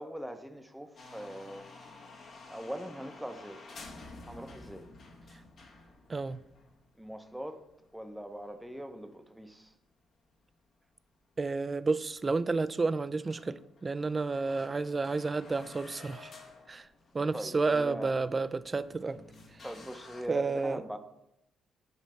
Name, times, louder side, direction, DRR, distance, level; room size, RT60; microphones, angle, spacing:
voice 1, 0.0-1.7 2.5-3.6 4.3-4.8 7.0-7.6 7.9-9.7 17.3-18.1 19.6-21.0, equal, ahead, 0.7 m, -41 dB
sound 1, 1.0-9.2 9.4-9.5 10.1-10.2 11.1-11.2 11.4-11.5 12.0-12.1 12.4-12.8 13.0-13.1 13.3-20.2, left 3 dB, 60° left, 1.3 m, -52 dB
voice 2, 6.1-6.4 11.4-16.3 16.7-16.9 17.1-19.2 20.3-20.8, right 3 dB, 30° right, 0.3 m, -31 dB
9.2 x 3.3 x 5.4 m
cardioid pair, 90°, 0 cm